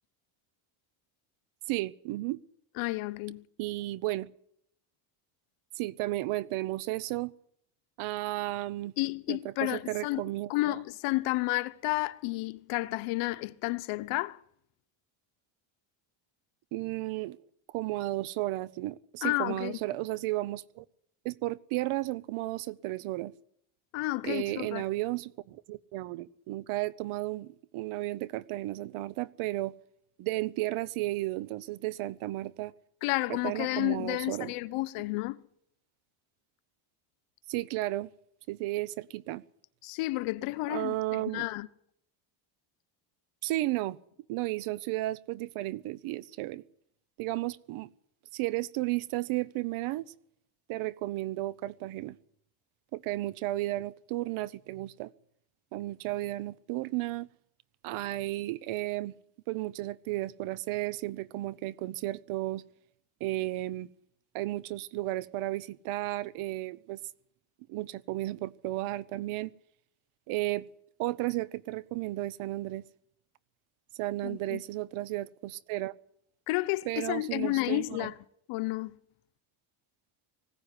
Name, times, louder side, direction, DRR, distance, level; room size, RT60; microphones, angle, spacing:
voice 1, 1.7-2.4 3.6-4.3 5.8-7.3 8.0-8.9 9.3-10.8 16.7-17.4 17.7-20.8 21.2-23.3 24.2-29.7 30.2-32.7 33.3-34.5 37.5-38.1 38.5-39.4 40.7-41.5 43.4-44.0 44.3-46.6 47.2-47.9 48.3-50.1 50.7-52.2 52.9-55.1 55.7-57.3 57.8-59.1 59.5-62.6 63.2-63.9 64.3-67.0 67.7-69.5 70.3-70.7 71.0-72.8 74.0-75.9 76.8-78.1, right 17 dB, 75° right, 1.0 m, -33 dB
voice 2, 2.8-3.4 9.0-10.2 10.5-14.4 19.2-19.8 23.9-24.8 33.0-35.4 39.8-41.7 74.2-74.6 76.5-78.1 78.5-79.0, left 20 dB, 80° left, 1.1 m, -31 dB
20.0 x 16.0 x 9.8 m
cardioid pair, 145°, 50 cm